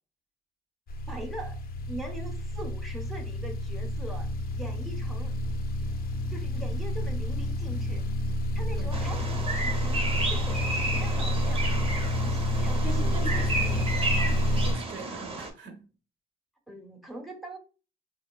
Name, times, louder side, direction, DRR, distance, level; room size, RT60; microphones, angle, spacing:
sound 1, 0.9-14.7, left 1 dB, 50° left, 0.5 m, -29 dB
voice 1, 1.1-1.6 1.9-5.3 6.3-8.1 8.5-11.8 12.2-13.9 16.7-17.6, right 1 dB, ahead, 0.6 m, -42 dB
Bird vocalization bird call bird song, 8.9-15.5, right 2 dB, 30° right, 0.7 m, -32 dB
voice 2, 12.8-15.9, right 3 dB, 70° right, 0.7 m, -42 dB
3.1 x 2.4 x 2.3 m
cardioid pair, 90°, 20 cm